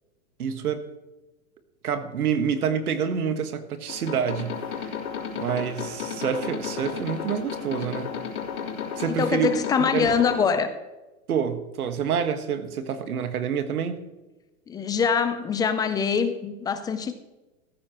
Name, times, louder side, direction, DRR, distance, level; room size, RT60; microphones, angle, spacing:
voice 1, 0.4-0.8 1.8-4.9 5.3-8.1 8.9-9.5 9.9-10.1 11.3-14.1, right 7 dB, 85° right, 1.6 m, -27 dB
sound 1, 3.9-10.4, left 7 dB, 90° left, 3.6 m, -33 dB
voice 2, 9.1-10.7 14.7-17.1, left 6 dB, 10° left, 0.4 m, -24 dB
14.5 x 13.0 x 3.0 m
hypercardioid pair, 130°, 43 cm